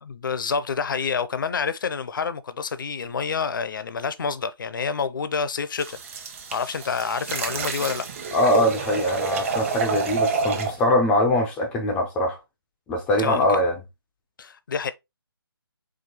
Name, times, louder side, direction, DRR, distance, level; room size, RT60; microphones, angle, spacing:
voice 1, 0.0-6.0 6.5-8.1 13.2-13.6 14.4-14.9, left 5 dB, 55° left, 0.5 m, -28 dB
sound 1, 5.8-10.8, right 5 dB, 35° right, 0.8 m, -28 dB
voice 2, 8.3-12.4 12.9-13.8, left 1 dB, 5° left, 0.4 m, -22 dB
4.8 x 2.3 x 4.2 m
figure-of-eight pair, 150°, 13 cm